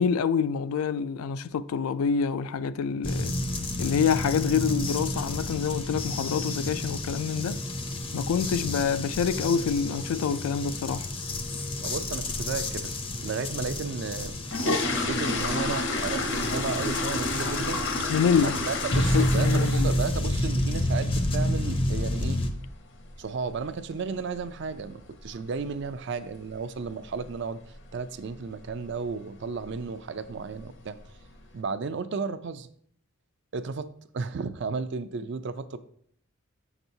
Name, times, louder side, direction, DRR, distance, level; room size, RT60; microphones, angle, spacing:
voice 1, 0.0-3.3 3.8-7.6 8.1-11.1 18.1-18.6 18.9-20.0, left 6 dB, 85° left, 0.3 m, -26 dB
sound 1, 3.0-22.5, left 1 dB, 25° left, 0.5 m, -30 dB
voice 2, 11.8-12.9 13.2-18.1 18.4-22.4 23.2-27.6 27.9-31.0 31.5-32.7 33.5-33.9 34.1-35.8, right 4 dB, 55° right, 0.4 m, -34 dB
sound 2, 14.1-20.0 20.3-20.6 21.0-21.1 21.4-21.6 21.9-22.2 22.4-22.5 23.1-23.2 23.5-23.6 24.1-24.4 24.7-24.8 25.2-25.4 25.7-25.8 26.3-26.4 27.0-27.3 27.6-27.9 28.3-28.4 28.8-28.9 29.7-29.8 30.2-30.7 31.2-31.3, left 2 dB, 55° left, 0.8 m, -30 dB
7.6 x 5.9 x 2.7 m
head